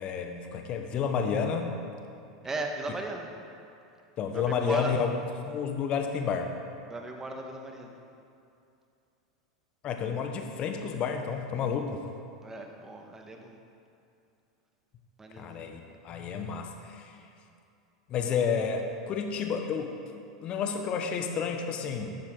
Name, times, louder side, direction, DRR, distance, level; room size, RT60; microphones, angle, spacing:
voice 1, 0.0-1.7 4.2-5.1 5.4-6.5 9.8-12.0 15.4-17.1 18.1-19.9 20.4-22.2, left 6 dB, 40° left, 5 dB, 1.2 m, -30 dB
voice 2, 2.4-3.3 4.3-4.9 6.9-8.0 12.4-13.6 15.2-15.7, right 2 dB, 15° right, 2 dB, 1.6 m, -37 dB
13.0 x 11.0 x 3.9 m, 2.6 s
figure-of-eight pair, 85°, 3 cm